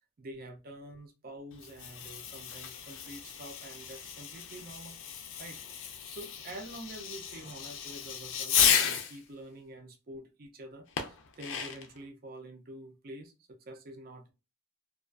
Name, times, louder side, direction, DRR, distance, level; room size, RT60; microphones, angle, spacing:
voice 1, 0.2-5.0 5.4-14.3, right 1 dB, 40° right, 0.4 m, -47 dB
Fireworks, 1.5-9.2 11.0-12.0, left 7 dB, 60° left, 0.4 m, -33 dB
2.3 x 2.3 x 2.3 m
head